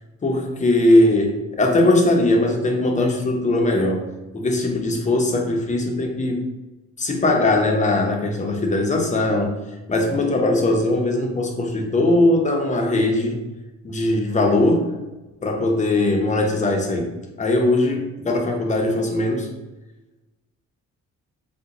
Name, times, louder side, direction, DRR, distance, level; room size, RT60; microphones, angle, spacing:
voice 1, 0.2-4.0 4.3-6.4 7.0-9.5 9.9-13.4 13.8-14.9 15.4-17.1 17.4-19.5, left 2 dB, 25° left, 1 dB, 0.7 m, -20 dB
3.7 x 2.2 x 2.9 m, 1.1 s
cardioid pair, 90°, 30 cm